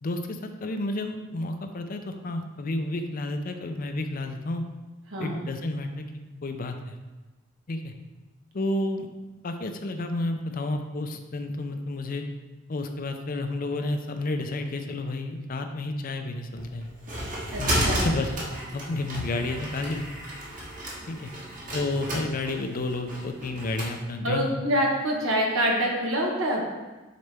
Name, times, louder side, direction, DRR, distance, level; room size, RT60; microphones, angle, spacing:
voice 1, 0.0-4.6 5.2-6.1 6.4-7.0 7.7-7.9 8.5-9.1 9.4-12.2 12.7-16.9 17.6-18.3 18.7-20.0 21.1-21.3 21.7-24.5, left 2 dB, 45° left, 6 dB, 0.5 m, -31 dB
voice 2, 5.1-5.4 17.5-18.0 24.2-26.6, equal, 90° right, -1 dB, 1.3 m, -26 dB
sound 1, 16.6-23.9, equal, 40° right, 1.3 m, -32 dB
6.6 x 4.2 x 3.4 m, 1.2 s
head